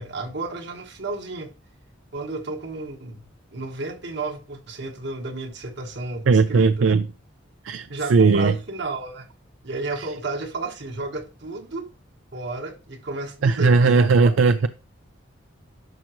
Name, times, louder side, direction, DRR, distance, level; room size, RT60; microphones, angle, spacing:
voice 1, 0.0-1.5 2.1-3.2 3.5-7.0 7.9-9.3 9.6-11.9 12.3-14.5, right 3 dB, 60° right, 1.3 m, -32 dB
voice 2, 6.3-7.1 7.7-8.5 13.4-14.7, right 4 dB, 80° right, 0.4 m, -17 dB
10.5 x 5.8 x 3.0 m
head